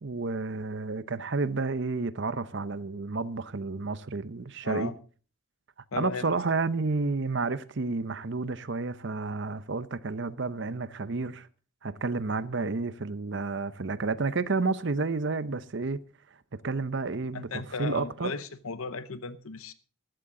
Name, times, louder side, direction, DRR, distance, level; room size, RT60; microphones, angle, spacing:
voice 1, 0.0-4.9 5.9-11.5 11.8-16.0 16.6-18.3, right 3 dB, 55° right, 0.7 m, -31 dB
voice 2, 4.6-4.9 5.9-6.3 17.3-19.7, left 4 dB, 75° left, 0.8 m, -35 dB
14.5 x 13.0 x 3.8 m
head